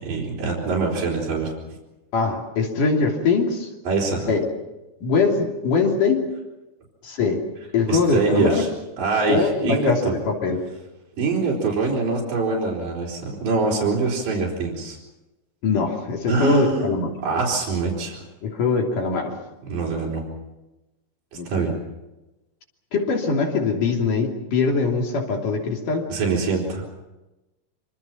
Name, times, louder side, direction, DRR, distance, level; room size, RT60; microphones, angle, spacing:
voice 1, 0.0-1.5 3.9-4.3 7.9-8.7 9.0-10.1 11.2-15.0 16.3-16.9 17.2-18.2 19.7-20.2 21.5-21.7 26.1-26.8, right 4 dB, 70° right, -4 dB, 5.9 m, -24 dB
voice 2, 2.1-3.7 4.1-4.5 5.0-6.3 7.0-7.4 7.7-8.6 9.3-10.6 15.6-17.1 18.4-19.3 21.3-21.7 22.9-26.1, left 4 dB, 65° left, 1 dB, 4.5 m, -22 dB
26.0 x 25.5 x 6.0 m, 1.0 s
omnidirectional pair, 3.9 m